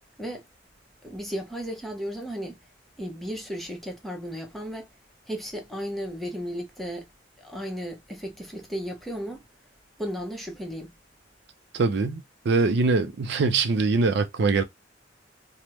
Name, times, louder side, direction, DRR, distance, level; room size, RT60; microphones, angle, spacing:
voice 1, 1.0-2.6 3.0-4.9 5.3-7.1 7.4-9.4 10.0-11.0, equal, ahead, 0.7 m, -34 dB
voice 2, 11.7-14.6, right 3 dB, 60° right, 0.5 m, -23 dB
3.4 x 2.1 x 2.9 m
head